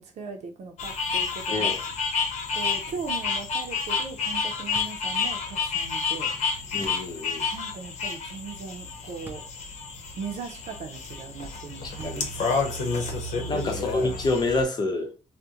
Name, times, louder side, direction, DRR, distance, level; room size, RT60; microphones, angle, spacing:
voice 1, 0.0-1.7 2.5-6.3 7.5-9.4 10.1-12.6 13.4-13.7, right 5 dB, 80° right, 0.5 m, -39 dB
sound 1, 0.8-14.6, left 5 dB, 85° left, 0.8 m, -30 dB
sound 2, 4.7-5.1 6.8-7.1 9.2-9.5 10.2-10.3 12.0-12.5, right 1 dB, 15° right, 0.6 m, -45 dB
voice 2, 6.7-7.5 11.8-12.3 13.5-15.1, left 2 dB, 40° left, 0.7 m, -27 dB
3.6 x 2.1 x 2.8 m
wide cardioid pair, 140°, 12 cm